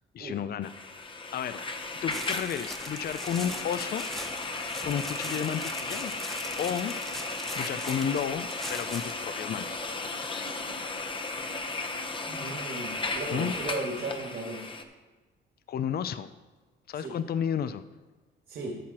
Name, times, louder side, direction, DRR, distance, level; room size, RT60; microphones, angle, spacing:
voice 1, 0.1-0.7 1.3-1.6 2.0-4.1 4.8-6.1 6.6-6.9 7.6-9.8 13.3-13.5 15.7-16.3 16.9-17.8, left 8 dB, 50° left, 13 dB, 0.5 m, -32 dB
sound 1, 0.6-14.8, left 3 dB, 25° left, 1.0 m, -35 dB
sound 2, 2.1-9.3, equal, ahead, 1.1 m, -41 dB
voice 2, 12.3-14.7 17.0-17.2 18.5-18.7, right 2 dB, 60° right, -2 dB, 2.1 m, -36 dB
13.5 x 5.9 x 4.3 m, 1.3 s
cardioid pair, 90°, 20 cm